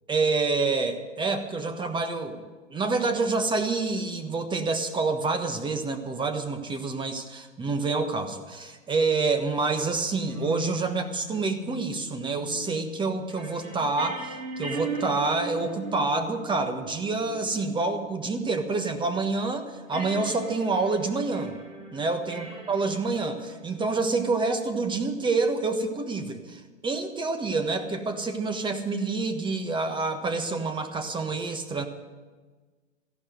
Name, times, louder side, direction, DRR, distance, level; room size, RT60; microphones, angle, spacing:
voice 1, 0.1-2.4 2.7-21.5 21.9-31.9, right 3 dB, 10° right, 7 dB, 1.4 m, -27 dB
sound 1, 10.3-19.3 19.9-24.1, right 2 dB, 80° right, 4.6 m, -40 dB
15.0 x 11.5 x 7.8 m, 1.4 s
figure-of-eight pair, 105°, 38 cm